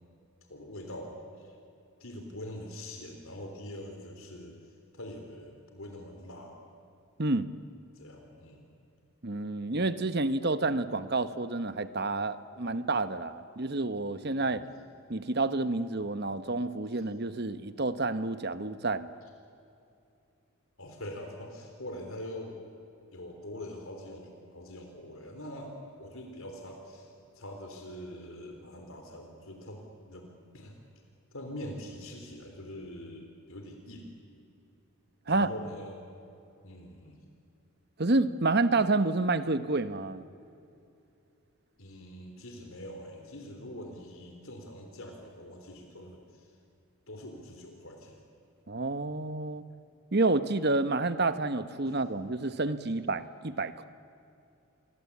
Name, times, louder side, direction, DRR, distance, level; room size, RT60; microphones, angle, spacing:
voice 1, 0.5-1.6 2.0-4.5 4.9-6.5 8.0-8.6 14.5-14.6 16.9-17.0 20.8-22.6 23.1-30.7 31.3-34.2 35.3-36.0 36.6-37.2 41.8-46.5 47.1-48.2 51.8-52.0, left 1 dB, 70° left, 3 dB, 3.6 m, -44 dB
voice 2, 9.2-14.6 15.1-19.1 35.3-35.5 38.0-40.2 48.7-49.6 50.1-53.8, right 2 dB, 45° right, 12 dB, 1.1 m, -29 dB
29.0 x 23.5 x 8.5 m, 2.6 s
head